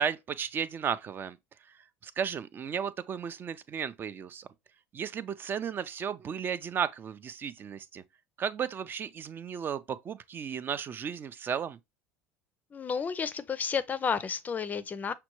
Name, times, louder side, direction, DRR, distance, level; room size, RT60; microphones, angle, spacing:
voice 1, 0.0-1.4 2.0-4.5 4.9-8.0 8.4-11.8, right 7 dB, 35° right, 0.4 m, -34 dB
voice 2, 12.7-15.1, left 6 dB, 25° left, 0.4 m, -31 dB
5.9 x 2.2 x 3.0 m
supercardioid pair, 100°, 6 cm